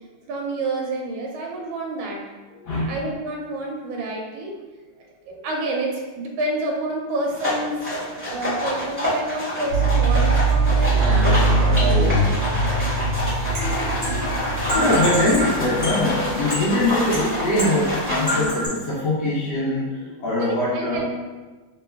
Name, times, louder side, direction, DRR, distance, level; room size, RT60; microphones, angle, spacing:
voice 1, 0.3-2.2 2.9-4.6 5.3-7.8 8.3-12.5 20.4-21.0, right 2 dB, 75° right, -1 dB, 1.3 m, -29 dB
voice 2, 2.6-3.0 13.2-13.3 13.6-21.0, left 1 dB, 65° left, -5 dB, 1.2 m, -23 dB
sound 1, 7.3-18.4, left 1 dB, 10° right, 1.0 m, -27 dB
sound 2, 9.7-16.4, right 3 dB, 60° right, 1.1 m, -21 dB
sound 3, 13.2-18.7, equal, 15° left, 0.7 m, -29 dB
3.4 x 2.9 x 3.3 m, 1.3 s
omnidirectional pair, 2.4 m